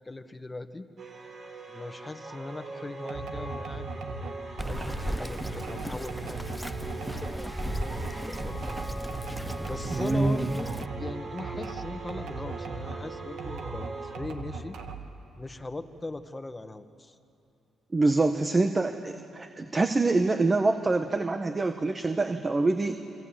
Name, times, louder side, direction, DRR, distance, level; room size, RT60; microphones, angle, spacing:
voice 1, 0.0-0.8 1.7-3.9 4.2-4.4 4.6-7.3 7.7-8.8 9.7-10.7 11.0-14.8 15.4-17.1, left 2 dB, 20° left, 9 dB, 1.6 m, -39 dB
sound 1, 1.0-14.2, right 3 dB, 60° right, 5.5 m, -41 dB
sound 2, 3.1-13.0 13.4-15.2, right 3 dB, 80° right, 2.2 m, -38 dB
Bird vocalization bird call bird song, 4.6-10.9, equal, 5° left, 0.8 m, -36 dB
voice 2, 9.9-10.5 17.9-23.0, right 3 dB, 30° right, 7 dB, 1.3 m, -25 dB
27.5 x 24.0 x 9.1 m, 2.7 s
cardioid pair, 75°, 0 cm